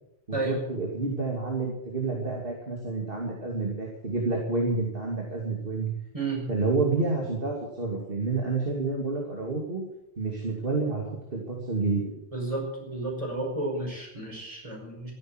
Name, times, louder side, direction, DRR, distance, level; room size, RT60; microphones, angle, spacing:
voice 1, 0.3-5.9 6.5-9.8 10.2-12.1, right 3 dB, 60° right, -1 dB, 2.9 m, -29 dB
voice 2, 6.1-6.4 12.3-15.1, right 2 dB, 30° right, 0 dB, 5.5 m, -32 dB
14.0 x 11.0 x 7.9 m, 0.85 s
omnidirectional pair, 1.1 m